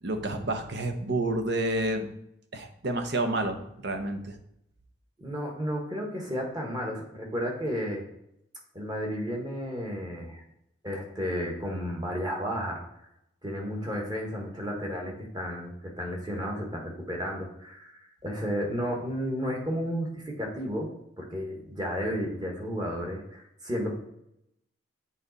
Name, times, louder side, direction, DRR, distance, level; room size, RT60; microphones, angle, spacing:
voice 1, 0.0-2.1 2.5-4.3, right 1 dB, 55° right, 6 dB, 0.8 m, -29 dB
voice 2, 5.2-8.0 8.7-10.4 10.8-12.8 13.4-20.9 21.2-23.9, equal, 20° right, 0 dB, 1.4 m, -32 dB
7.6 x 4.1 x 4.1 m, 0.81 s
head